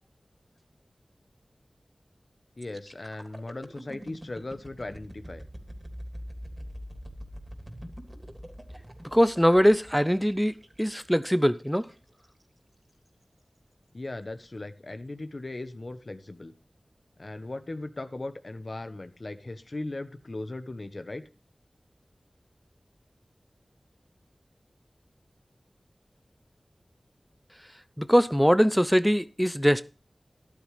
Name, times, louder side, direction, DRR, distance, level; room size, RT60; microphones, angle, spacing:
voice 1, 2.6-5.4 13.9-16.5 17.2-21.2, left 2 dB, 55° left, 1.1 m, -38 dB
sound 1, 2.6-12.4 12.9-13.1, equal, 30° right, 3.1 m, -44 dB
voice 2, 9.1-11.9 28.0-29.8, equal, ahead, 0.6 m, -22 dB
13.0 x 12.0 x 3.3 m
wide cardioid pair, 45°, 0 cm